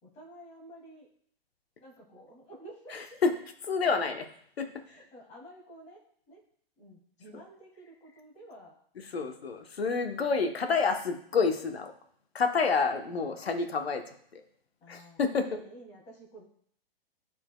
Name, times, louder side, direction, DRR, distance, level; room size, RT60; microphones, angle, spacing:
voice 1, 0.0-1.1 1.8-3.2 4.8-6.0 6.3-6.4 6.8-8.8 14.8-16.4, right 1 dB, 25° left, -2 dB, 2.5 m, -51 dB
voice 2, 3.6-4.3 4.6-4.7 9.1-11.9 12.3-14.0 14.3-14.4 14.9-15.6, left 5 dB, 90° left, 6 dB, 1.1 m, -28 dB
12.0 x 4.4 x 2.3 m, 0.63 s
hypercardioid pair, 130°, 30 cm